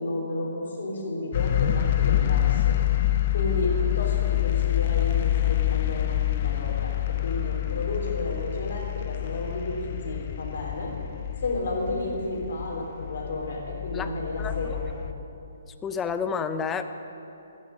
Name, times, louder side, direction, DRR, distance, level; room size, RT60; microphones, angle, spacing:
voice 1, 0.0-2.8 3.3-10.9 11.4-14.8, left 2 dB, 60° left, -1 dB, 3.4 m, -32 dB
sound 1, 1.3-15.1, left 13 dB, 40° left, 0.8 m, -27 dB
voice 2, 14.4-14.7 15.8-16.9, left 6 dB, 15° left, 9 dB, 0.6 m, -30 dB
13.5 x 10.5 x 6.4 m, 2.8 s
figure-of-eight pair, 135°, 0 cm